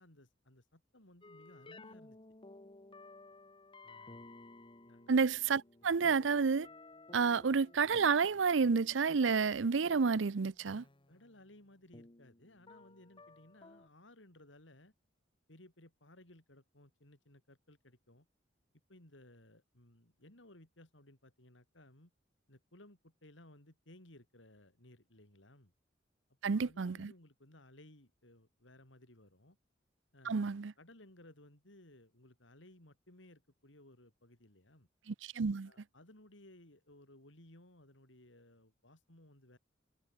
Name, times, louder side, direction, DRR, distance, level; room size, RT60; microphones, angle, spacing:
voice 1, 0.0-2.2 3.8-4.3 4.8-5.1 11.1-14.9 15.5-18.3 18.9-22.1 22.5-25.7 26.3-29.6 30.1-34.9 35.6-39.6, left 1 dB, 80° left, 5.2 m, -60 dB
sound 1, 1.2-13.9, left 2 dB, 30° left, 1.4 m, -56 dB
voice 2, 5.1-6.7 7.1-10.8 26.4-27.1 30.3-30.7 35.1-35.7, right 5 dB, 80° right, 0.6 m, -30 dB
head